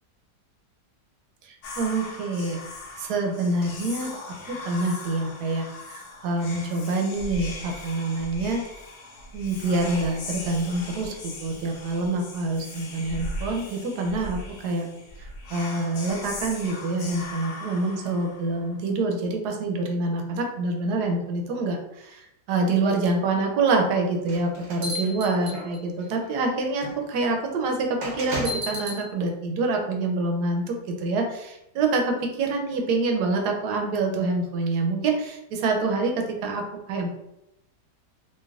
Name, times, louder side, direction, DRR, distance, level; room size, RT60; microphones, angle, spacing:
voice 1, 1.4-2.6 3.0-8.6 9.3-14.9 15.5-37.1, right 3 dB, 75° right, 2 dB, 1.1 m, -26 dB
Whispering, 1.6-18.8, left 2 dB, 70° left, 1.2 m, -39 dB
sound 1, 24.3-26.0 26.8-26.9 28.0-29.0, equal, 55° right, 0.8 m, -32 dB
3.2 x 2.8 x 2.3 m, 0.86 s
omnidirectional pair, 1.8 m